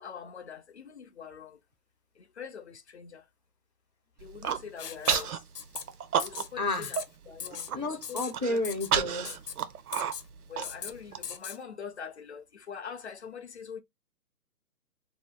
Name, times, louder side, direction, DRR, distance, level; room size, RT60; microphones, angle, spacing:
voice 1, 0.0-1.5 2.4-3.2 4.2-5.3 6.2-6.7 7.3-7.7 8.1-8.2 8.5-8.6 10.5-13.8, left 7 dB, 45° left, 0.5 m, -43 dB
Human voice, 4.2-4.6 5.1-5.4 5.7-6.7 7.0-7.1 7.4-7.8 8.3-11.2, right 8 dB, 70° right, 0.7 m, -30 dB
Writing, 4.8-5.3 5.6-5.8 6.2-6.5 6.8-7.0 7.4-7.7 8.0-8.3 8.6-8.9 9.3-9.5 9.9-10.3 10.6-10.9 11.2-11.6, left 7 dB, 80° left, 1.0 m, -38 dB
voice 2, 6.6-7.0 7.7-9.4, left 2 dB, 30° right, 0.4 m, -31 dB
2.8 x 2.2 x 3.3 m
hypercardioid pair, 160°, 47 cm